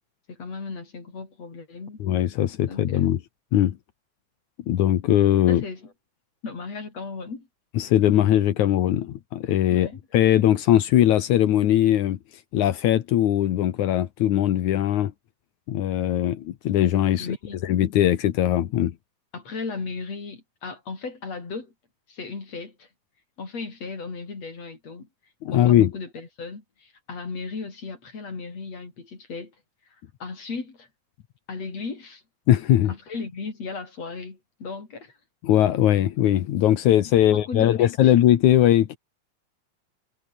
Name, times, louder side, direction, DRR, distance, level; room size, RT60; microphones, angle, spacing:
voice 1, 0.3-2.0 2.7-3.1 5.5-5.9 6.4-7.5 9.7-10.0 17.2-17.8 19.3-21.7 22.1-22.9 23.4-25.1 25.5-29.6 29.9-30.9 31.5-32.2 32.9-35.2 37.2-38.1, left 4 dB, 60° left, 6.0 m, -36 dB
voice 2, 2.0-3.2 3.5-3.8 4.7-5.6 7.8-9.9 10.1-12.2 12.5-15.1 15.7-17.3 17.6-18.9 25.4-25.9 32.5-32.9 35.4-39.0, left 12 dB, 75° left, 2.7 m, -20 dB
omnidirectional pair, 3.4 m